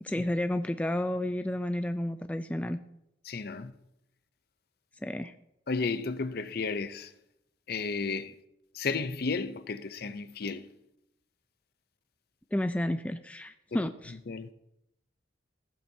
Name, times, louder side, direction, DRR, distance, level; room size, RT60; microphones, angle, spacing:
voice 1, 0.0-2.8 5.0-5.3 12.5-14.1, left 1 dB, 5° left, 0.3 m, -31 dB
voice 2, 3.2-3.7 5.7-7.1 7.7-8.3 8.7-10.7 13.7-13.8 14.3-14.5, left 4 dB, 50° left, 0.6 m, -33 dB
15.0 x 11.5 x 2.8 m
head